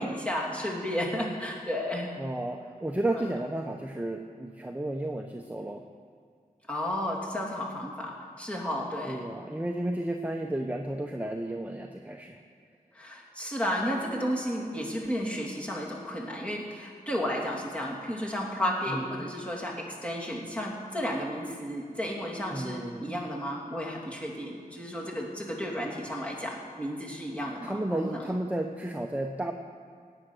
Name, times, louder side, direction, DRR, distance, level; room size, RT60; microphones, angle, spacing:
voice 1, 0.0-2.1 3.1-3.2 6.7-9.2 12.9-28.2, equal, 10° left, -3 dB, 3.1 m, -33 dB
voice 2, 2.2-5.8 9.0-12.4 18.9-19.3 22.5-23.1 27.6-29.5, right 1 dB, 10° right, 3 dB, 0.9 m, -33 dB
17.5 x 8.9 x 6.4 m, 2.2 s
wide cardioid pair, 85°, 15 cm